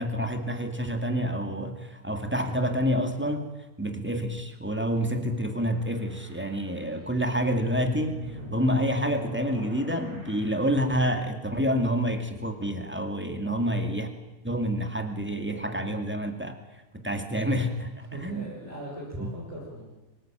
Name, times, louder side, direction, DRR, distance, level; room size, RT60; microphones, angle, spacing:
voice 1, 0.0-3.5 3.8-8.2 8.5-14.1 14.4-16.6 16.9-18.5 19.2-19.3, equal, 5° right, 6 dB, 2.3 m, -28 dB
sound 1, 4.5-11.2, equal, 60° right, 7.1 m, -45 dB
voice 2, 13.4-13.7 18.1-19.8, right 1 dB, 40° right, -6 dB, 6.7 m, -39 dB
24.0 x 19.0 x 9.1 m, 1.1 s
omnidirectional pair, 1.7 m